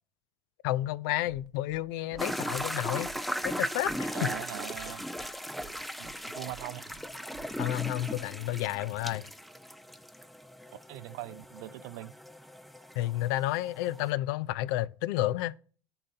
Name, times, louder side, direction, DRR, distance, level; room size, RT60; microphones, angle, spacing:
voice 1, 0.6-4.3 7.6-9.3 13.0-15.6, left 15 dB, 75° left, 0.4 m, -31 dB
sound 1, 1.2-8.2, right 7 dB, 40° right, 0.7 m, -54 dB
sound 2, 2.2-14.1, equal, ahead, 0.3 m, -38 dB
voice 2, 4.1-5.1 6.0-6.9 8.0-8.1 10.7-12.1, right 17 dB, 75° right, 0.4 m, -41 dB
11.5 x 3.9 x 2.7 m
supercardioid pair, 125°, 11 cm